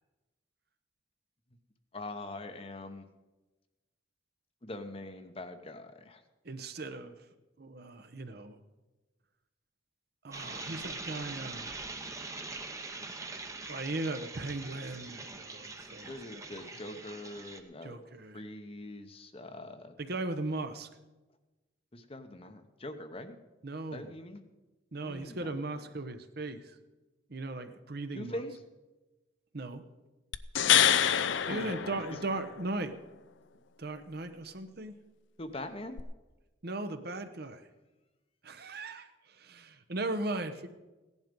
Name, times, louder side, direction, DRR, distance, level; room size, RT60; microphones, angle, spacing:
voice 1, 1.9-3.1 4.6-6.2 16.1-18.0 18.3-19.9 21.9-23.4 23.9-24.5 25.0-25.8 28.1-28.5 30.6-32.2 35.4-36.0, left 2 dB, 30° left, 8 dB, 0.9 m, -43 dB
voice 2, 6.4-7.2 7.6-8.6 10.2-11.8 13.7-16.1 16.3-16.4 17.8-18.4 20.0-20.9 23.6-24.1 24.9-26.8 27.3-28.4 29.5-29.8 31.5-33.0 33.8-34.9 36.6-37.6 38.4-40.7, right 2 dB, 55° right, 9 dB, 1.0 m, -38 dB
sound 1, 10.3-17.6, right 3 dB, 15° right, 0.9 m, -43 dB
sound 2, 30.3-32.6 36.0-36.1, left 10 dB, 75° left, 0.6 m, -26 dB
16.5 x 11.0 x 5.3 m, 1.1 s
head